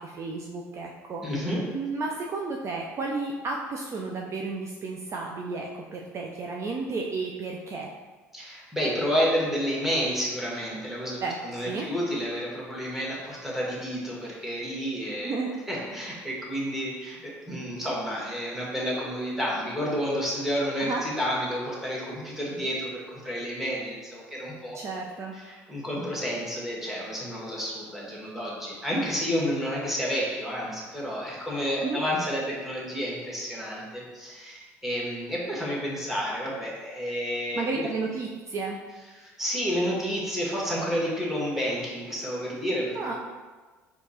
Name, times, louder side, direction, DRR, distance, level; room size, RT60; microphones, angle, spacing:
voice 1, 0.0-1.2 1.7-7.9 11.2-11.9 15.2-15.5 20.8-21.0 24.7-25.3 31.8-32.0 37.5-38.8 42.9-43.1, right 3 dB, 40° right, 0 dB, 0.4 m, -32 dB
voice 2, 1.2-1.6 8.3-15.3 15.7-24.8 25.3-37.9 39.1-43.1, equal, 5° right, -5 dB, 1.4 m, -30 dB
4.4 x 2.7 x 2.8 m, 1.3 s
hypercardioid pair, 65°, 7 cm